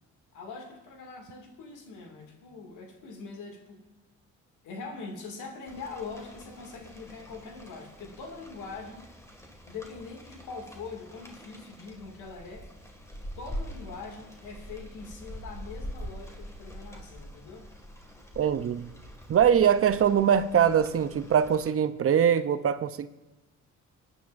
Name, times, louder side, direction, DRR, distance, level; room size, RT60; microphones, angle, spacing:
voice 1, 0.3-3.8 4.6-9.1 9.7-12.7 13.4-17.7, left 4 dB, 80° left, 3 dB, 2.3 m, -42 dB
Rain, 5.7-21.7, equal, 10° left, 2.0 m, -44 dB
voice 2, 18.4-18.9 19.3-23.1, right 8 dB, 50° right, 11 dB, 0.7 m, -23 dB
26.0 x 9.9 x 2.6 m, 1.1 s
cardioid pair, 90°, 30 cm